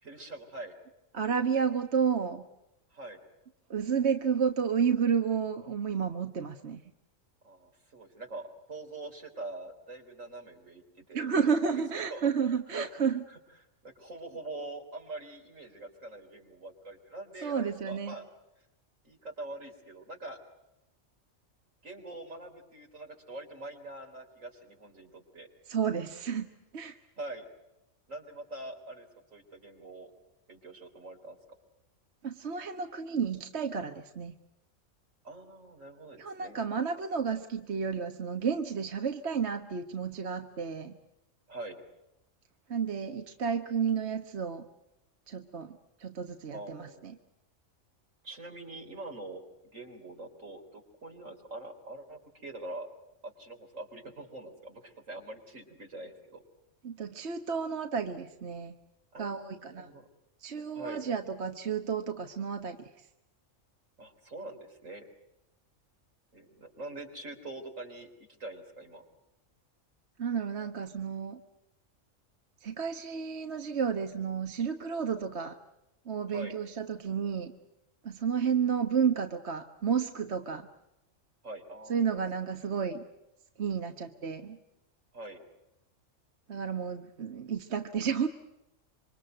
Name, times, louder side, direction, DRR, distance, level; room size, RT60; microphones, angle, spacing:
voice 1, 0.0-0.8 2.9-3.2 7.4-11.6 11.9-12.3 12.7-13.4 13.8-18.2 19.0-20.4 21.8-25.5 27.2-27.5 28.1-30.1 30.5-31.4 35.2-36.6 41.5-41.8 46.5-47.2 48.2-52.9 53.2-56.4 59.1-60.1 60.7-61.1 64.0-65.1 66.3-68.1 68.4-69.1 76.3-76.6 81.4-82.1 85.1-85.4, right 2 dB, 80° right, 4 dB, 4.3 m, -44 dB
voice 2, 1.1-2.4 3.7-6.8 11.1-13.2 17.4-18.1 25.7-26.5 26.7-27.0 32.2-34.3 36.2-41.0 42.7-44.7 45.3-46.9 56.8-58.7 59.2-59.9 60.4-62.9 70.2-71.4 72.6-75.6 76.1-77.5 78.0-80.7 81.9-83.0 83.6-84.6 86.5-88.3, right 6 dB, 60° right, 7 dB, 1.5 m, -31 dB
27.0 x 25.0 x 7.9 m, 0.90 s
omnidirectional pair, 1.3 m